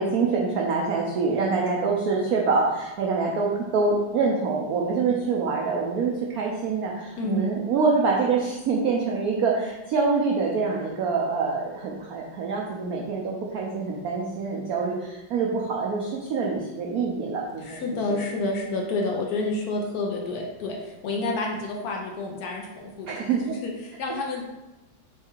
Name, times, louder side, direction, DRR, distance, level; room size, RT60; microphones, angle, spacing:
voice 1, 0.0-17.8 18.1-18.2 23.1-23.4, right 4 dB, 85° right, -2 dB, 0.8 m, -25 dB
voice 2, 7.2-7.5 17.6-23.2 23.4-24.4, left 2 dB, 70° left, 0 dB, 0.9 m, -29 dB
4.6 x 2.3 x 4.4 m, 1.0 s
omnidirectional pair, 2.2 m